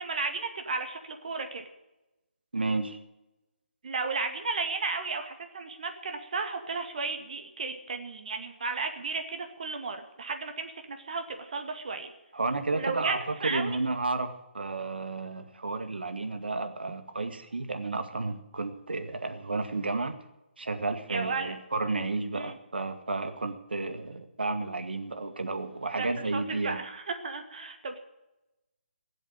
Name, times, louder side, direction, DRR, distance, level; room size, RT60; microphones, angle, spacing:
voice 1, 0.0-1.6 3.8-12.1 12.7-13.7 21.1-21.5 22.3-22.5 25.9-28.0, right 4 dB, 45° right, 5 dB, 2.1 m, -34 dB
voice 2, 2.5-3.0 12.3-13.2 13.5-20.2 20.6-26.8, right 3 dB, 65° right, 8 dB, 2.1 m, -32 dB
17.5 x 7.8 x 9.3 m, 0.96 s
figure-of-eight pair, 145°, 6 cm